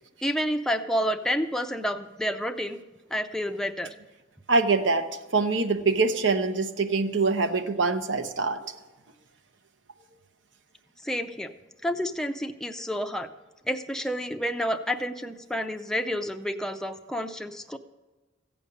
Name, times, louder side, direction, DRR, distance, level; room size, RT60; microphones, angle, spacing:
voice 1, 0.2-2.8 3.1-3.9 11.0-11.5 11.8-13.3 13.7-17.8, equal, 5° left, 5 dB, 0.5 m, -29 dB
voice 2, 4.5-5.1 5.3-8.7, right 3 dB, 80° right, 8 dB, 0.9 m, -24 dB
15.0 x 5.3 x 8.5 m, 1.2 s
head